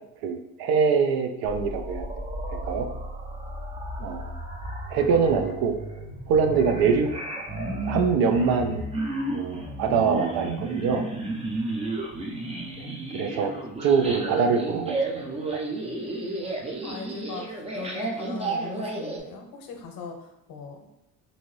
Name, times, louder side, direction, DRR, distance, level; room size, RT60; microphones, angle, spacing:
voice 1, 0.2-2.1 2.6-2.9 4.0-4.3 4.9-5.8 6.3-7.1 7.9-8.8 9.3-11.0 12.8-12.9 13.1-13.5 13.8-15.0 15.5-15.6, right 5 dB, 65° right, 6 dB, 0.5 m, -23 dB
sound 1, 1.4-19.2, right 2 dB, 15° right, 0.5 m, -33 dB
voice 2, 16.8-20.9, left 5 dB, 60° left, 3 dB, 0.8 m, -39 dB
2.7 x 2.6 x 3.1 m, 0.83 s
cardioid pair, 95°, 39 cm